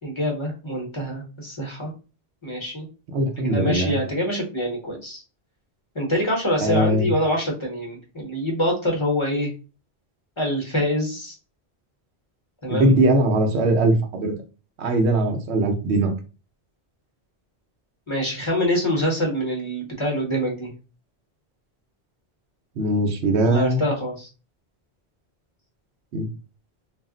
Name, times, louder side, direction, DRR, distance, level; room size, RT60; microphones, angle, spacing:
voice 1, 0.0-1.9 2.4-2.9 3.4-5.2 5.9-9.5 10.4-11.4 12.6-12.9 18.1-20.7 23.4-24.3, equal, 30° left, -1 dB, 0.8 m, -25 dB
voice 2, 3.1-4.0 6.6-7.1 12.7-14.3 14.8-16.1 22.8-23.8 26.1-26.3, right 1 dB, 80° right, 4 dB, 0.9 m, -20 dB
2.4 x 2.0 x 3.7 m, 0.32 s
omnidirectional pair, 1.1 m